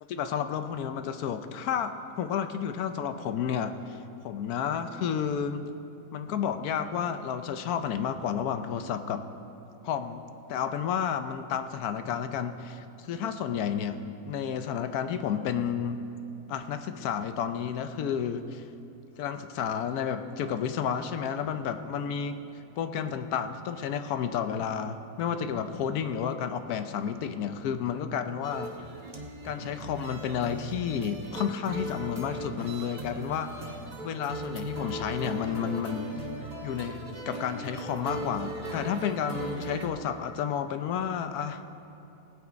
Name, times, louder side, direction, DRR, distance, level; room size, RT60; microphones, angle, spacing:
voice 1, 0.1-4.0 4.2-5.6 6.1-9.3 9.8-16.0 16.5-18.6 19.2-22.4 22.8-28.7 29.4-36.1 36.6-41.6, left 8 dB, 90° left, 9 dB, 1.2 m, -31 dB
sound 1, 28.4-39.9, right 1 dB, 30° right, 1.1 m, -38 dB
18.0 x 8.6 x 5.1 m, 2.7 s
omnidirectional pair, 1.6 m